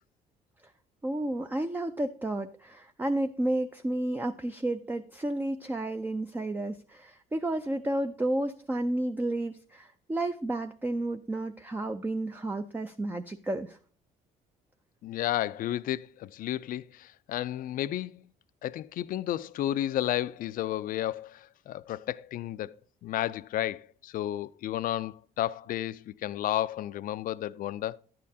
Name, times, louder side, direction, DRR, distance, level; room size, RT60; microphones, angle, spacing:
voice 1, 1.0-13.8, right 1 dB, 10° right, 0.4 m, -31 dB
voice 2, 15.0-18.3 18.6-22.8 23.0-28.0, left 13 dB, 55° left, 0.4 m, -32 dB
11.0 x 8.5 x 2.7 m
cardioid pair, 110°, 17 cm